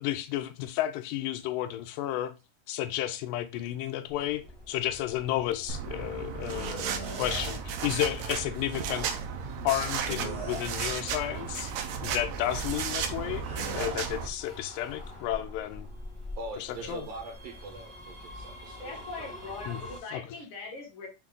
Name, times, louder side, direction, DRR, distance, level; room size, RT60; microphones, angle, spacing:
voice 1, 0.0-2.4 2.7-4.4 4.7-9.1 9.6-11.7 12.0-15.9 16.6-17.1 19.7-19.8 20.1-20.3, left 13 dB, 90° left, 2.3 m, -32 dB
sound 1, 4.1-20.0, left 1 dB, 15° right, 0.6 m, -47 dB
sound 2, 5.7-14.3, right 7 dB, 90° right, 1.5 m, -34 dB
sound 3, 6.5-7.6 10.0-11.0 13.4-14.1, right 2 dB, 50° right, 0.8 m, -40 dB
voice 2, 16.4-19.3, right 2 dB, 75° right, 1.6 m, -42 dB
voice 3, 18.8-21.1, left 3 dB, 60° left, 1.4 m, -41 dB
6.0 x 2.4 x 3.6 m
omnidirectional pair, 3.9 m